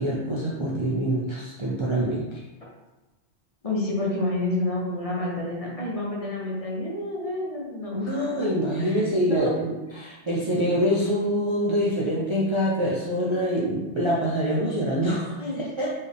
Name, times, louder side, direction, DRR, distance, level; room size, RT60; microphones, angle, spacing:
voice 1, 0.0-2.3 7.9-15.5 15.8-15.9, equal, 35° right, -6 dB, 0.5 m, -25 dB
voice 2, 3.6-8.3 8.8-9.5 15.4-15.6, left 2 dB, 35° left, -4 dB, 0.9 m, -29 dB
4.4 x 3.4 x 3.4 m, 1.1 s
omnidirectional pair, 1.1 m